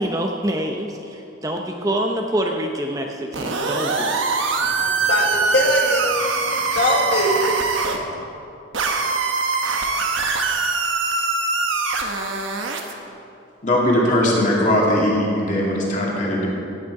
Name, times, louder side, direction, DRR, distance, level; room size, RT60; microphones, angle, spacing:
voice 1, 0.0-4.2, right 1 dB, 15° right, 2 dB, 0.7 m, -25 dB
sound 1, 3.3-8.0 8.7-12.9, right 4 dB, 80° right, 1.2 m, -23 dB
voice 2, 4.6-8.2, left 1 dB, 55° left, 0 dB, 1.6 m, -23 dB
voice 3, 13.6-16.5, left 1 dB, 40° left, -3 dB, 2.5 m, -20 dB
16.5 x 9.2 x 4.8 m, 2.7 s
head